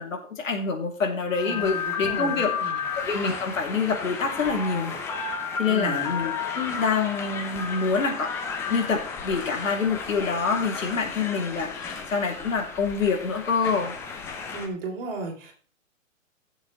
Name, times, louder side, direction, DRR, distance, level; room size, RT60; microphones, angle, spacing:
voice 1, 0.0-2.5 2.9-5.0 5.6-8.3 8.7-14.0, left 5 dB, 70° left, 2 dB, 3.1 m, -26 dB
sound 1, 1.3-14.7, left 6 dB, 5° left, 0.5 m, -33 dB
voice 2, 1.4-2.8 5.7-6.1 14.5-15.5, right 3 dB, 45° right, 1 dB, 3.5 m, -35 dB
16.0 x 7.2 x 3.2 m, 0.41 s
hypercardioid pair, 135°, 40 cm